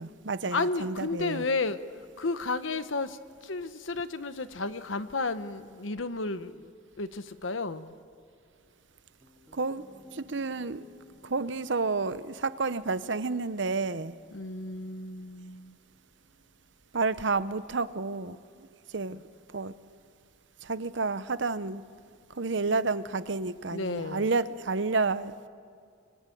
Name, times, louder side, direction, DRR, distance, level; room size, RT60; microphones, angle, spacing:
voice 1, 0.0-1.4 9.5-9.8 10.1-10.8 11.2-14.2 16.9-19.2 19.5-20.0 20.6-21.8 22.3-25.3, right 3 dB, 65° right, 14 dB, 0.8 m, -30 dB
voice 2, 0.5-1.8 2.2-6.7 7.0-7.9 14.3-15.8 23.7-24.3, left 3 dB, 75° left, 12 dB, 1.1 m, -32 dB
Piano, 9.2-17.3, left 3 dB, ahead, 2.4 m, -57 dB
25.0 x 23.5 x 9.2 m, 2.2 s
head